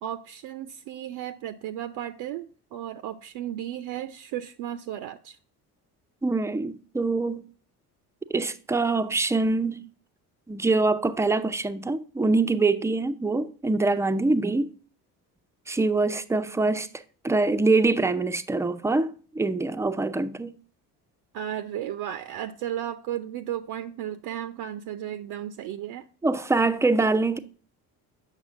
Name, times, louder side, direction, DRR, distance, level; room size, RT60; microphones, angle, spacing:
voice 1, 0.0-5.4 21.3-26.1, right 11 dB, 55° right, 0.6 m, -34 dB
voice 2, 6.2-7.4 8.3-9.9 10.5-14.7 15.7-16.9 17.2-20.5 26.2-27.4, right 3 dB, 5° right, 0.4 m, -24 dB
8.1 x 6.2 x 2.5 m
hypercardioid pair, 55°, 47 cm